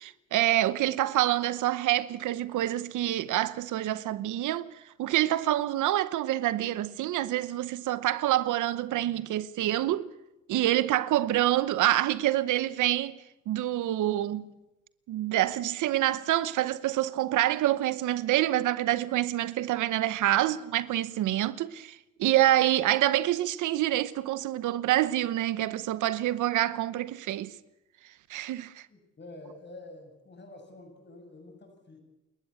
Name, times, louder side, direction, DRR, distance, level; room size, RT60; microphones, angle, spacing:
voice 1, 0.0-4.7 5.0-10.1 10.5-13.2 13.5-14.5 15.1-27.5 28.3-28.8, right 14 dB, 80° right, 0.9 m, -27 dB
voice 2, 28.9-32.0, left 2 dB, 35° left, 7.4 m, -48 dB
29.0 x 13.0 x 8.4 m
cardioid pair, 90°, 30 cm